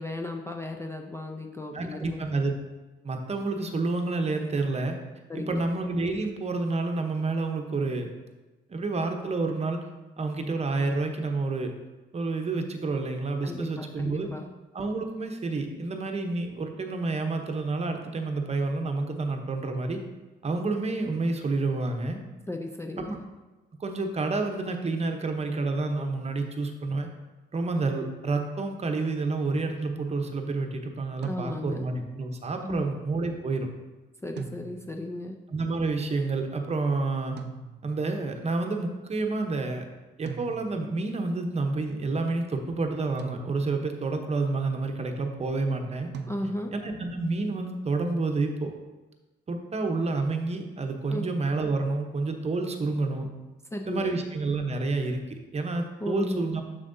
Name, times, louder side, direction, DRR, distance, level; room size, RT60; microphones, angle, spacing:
voice 1, 0.0-2.2 5.3-5.7 13.4-14.5 22.5-23.2 31.2-31.8 32.6-32.9 34.2-35.4 46.3-46.7 51.1-51.3 53.7-54.2 56.0-56.5, left 1 dB, 15° left, 3 dB, 0.4 m, -35 dB
voice 2, 1.7-2.5 3.0-5.0 5.3-8.1 8.7-9.8 10.2-11.7 12.1-14.3 14.7-20.0 20.4-22.2 23.0-23.2 23.8-27.1 27.5-33.7 35.5-37.4 37.8-39.9 40.2-46.1 46.7-48.7 49.5-53.3 53.8-56.6, right 3 dB, 35° right, 4 dB, 0.8 m, -29 dB
sound 1, 31.2-32.0 34.4-35.1 37.4-38.1 40.3-41.0 43.2-44.0 46.1-46.9, right 5 dB, 60° right, 0.6 m, -41 dB
7.2 x 6.5 x 2.7 m, 1.2 s
cardioid pair, 90°, 20 cm